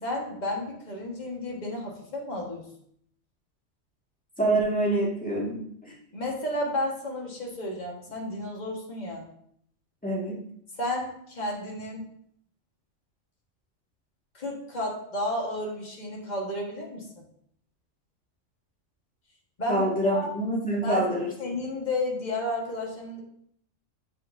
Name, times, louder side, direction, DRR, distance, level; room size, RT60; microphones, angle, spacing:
voice 1, 0.0-2.7 6.1-9.3 10.7-12.0 14.3-17.2 19.6-20.3 20.8-21.1 21.4-23.2, left 1 dB, 35° left, -2 dB, 1.6 m, -32 dB
voice 2, 4.4-5.6 10.0-10.4 19.7-21.3, right 1 dB, 5° left, -5 dB, 1.9 m, -26 dB
7.6 x 5.9 x 2.7 m, 0.68 s
omnidirectional pair, 1.3 m